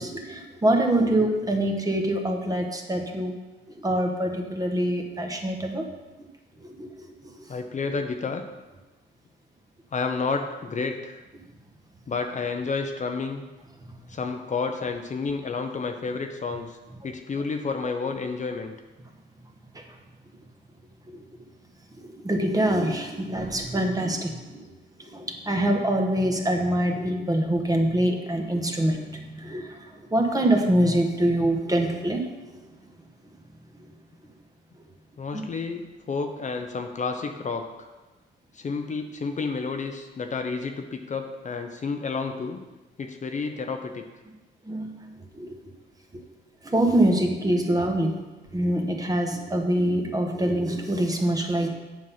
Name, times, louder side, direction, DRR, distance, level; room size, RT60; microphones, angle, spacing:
voice 1, 0.0-3.3 3.8-5.8 6.6-6.9 21.1-21.2 22.0-24.6 25.0-29.7 30.1-32.2 35.3-35.5 44.7-44.9 45.4-45.6 46.1-46.2 46.6-48.2 48.5-51.7, right 1 dB, 20° right, 3 dB, 1.4 m, -24 dB
voice 2, 7.5-8.4 9.9-11.2 12.1-13.4 14.1-16.8 17.0-18.7 35.2-37.9 38.5-42.6 43.0-44.1, left 4 dB, 35° left, 5 dB, 0.7 m, -30 dB
7.7 x 5.8 x 5.7 m, 1.1 s
cardioid pair, 90°, 20 cm